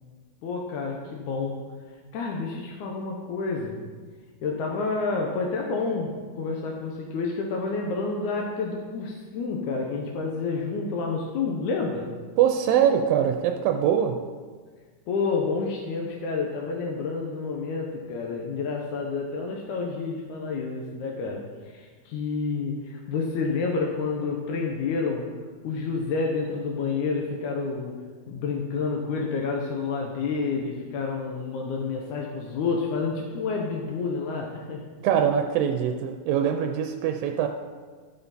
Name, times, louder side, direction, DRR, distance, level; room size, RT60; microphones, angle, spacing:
voice 1, 0.4-1.6 2.1-3.8 4.4-12.1 15.1-25.3 25.6-28.0 28.3-34.8, left 4 dB, 70° left, 0 dB, 2.0 m, -29 dB
voice 2, 12.4-14.2 35.0-37.5, right 9 dB, 85° right, 5 dB, 2.3 m, -23 dB
14.0 x 5.7 x 4.1 m, 1.5 s
omnidirectional pair, 4.0 m